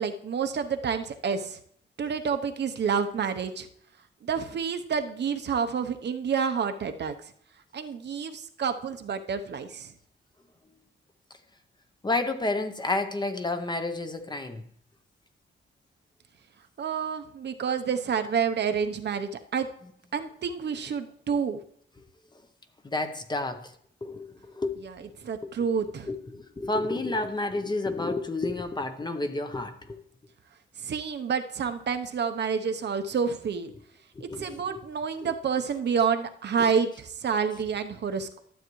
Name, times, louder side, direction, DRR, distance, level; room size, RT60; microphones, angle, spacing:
voice 1, 0.0-1.6 2.0-3.7 4.2-7.2 7.7-9.9 16.8-19.7 20.1-21.6 24.8-26.1 30.8-33.7 34.4-38.4, right 6 dB, 55° right, 7 dB, 0.8 m, -29 dB
voice 2, 12.0-14.6 22.8-23.7 24.0-24.8 25.4-25.5 26.0-30.0 34.2-34.8, left 2 dB, 20° left, 8 dB, 0.8 m, -30 dB
12.5 x 8.0 x 3.1 m, 0.66 s
wide cardioid pair, 145°, 21 cm